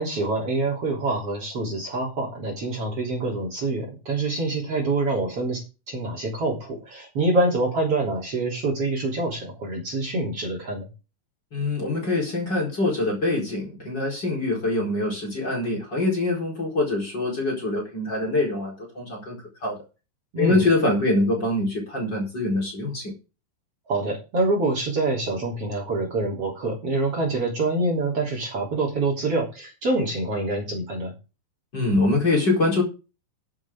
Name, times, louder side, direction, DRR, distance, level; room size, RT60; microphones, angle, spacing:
voice 1, 0.0-5.6 5.9-10.9 20.3-20.6 23.9-31.1, right 2 dB, 40° right, 1 dB, 4.0 m, -26 dB
voice 2, 11.5-19.8 20.4-23.1 31.7-32.8, left 2 dB, 25° left, 0 dB, 4.5 m, -24 dB
11.0 x 10.5 x 3.7 m, 0.31 s
omnidirectional pair, 4.6 m